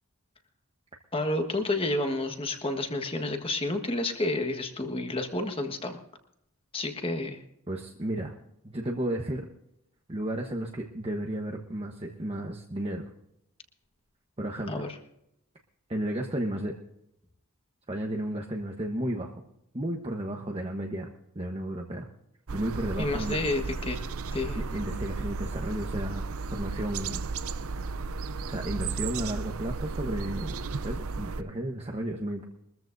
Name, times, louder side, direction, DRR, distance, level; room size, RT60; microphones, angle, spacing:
voice 1, 1.1-6.0 6.7-7.4 14.7-14.9 23.0-24.0 24.3-24.6, left 2 dB, 25° left, 6 dB, 1.4 m, -30 dB
voice 2, 7.7-8.3 8.6-9.5 10.1-13.0 14.4-14.8 15.9-16.7 17.9-19.3 19.7-21.1 21.3-22.0 22.5-23.4 24.5-26.2 26.5-27.2 28.5-32.4, right 1 dB, 25° right, 2 dB, 1.1 m, -33 dB
sound 1, 22.5-31.4, right 4 dB, 70° right, 0.6 m, -34 dB
22.5 x 14.0 x 2.7 m, 0.80 s
head